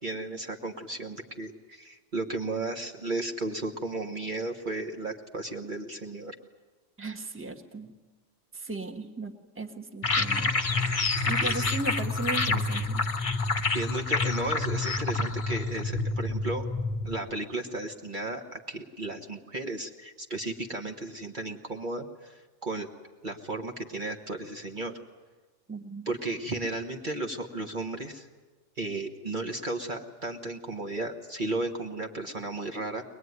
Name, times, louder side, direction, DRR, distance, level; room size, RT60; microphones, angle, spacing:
voice 1, 0.0-6.3 11.4-11.7 13.7-16.7 17.0-22.9 23.2-25.0 26.1-28.3 28.8-33.0, right 2 dB, 45° right, 3 dB, 1.4 m, -34 dB
voice 2, 7.0-7.9 8.5-10.5 11.3-13.0 25.7-26.1, right 2 dB, 10° right, 2 dB, 1.4 m, -36 dB
sound 1, 10.0-17.1, left 3 dB, 30° left, 0.8 m, -28 dB
22.5 x 20.5 x 9.5 m, 1.3 s
omnidirectional pair, 1.2 m